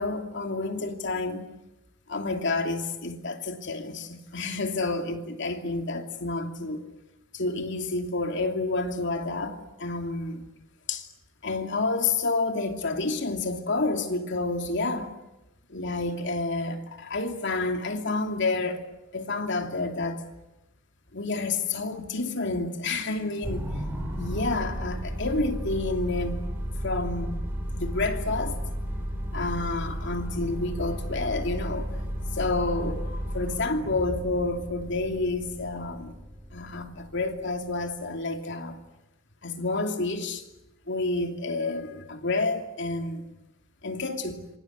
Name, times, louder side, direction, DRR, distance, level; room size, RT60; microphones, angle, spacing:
voice 1, 0.0-1.5 2.1-6.9 7.3-10.4 10.9-11.1 11.4-15.1 15.7-18.8 19.1-20.2 21.1-23.7 24.2-26.4 26.8-27.4 27.7-28.6 29.3-31.9 32.3-36.2 36.5-38.8 39.4-40.4 40.9-43.3 43.8-44.4, left 3 dB, 60° left, 2.8 m, -29 dB
sound 1, 23.4-37.9, equal, 10° right, 7.3 m, -34 dB
27.5 x 25.0 x 8.2 m
head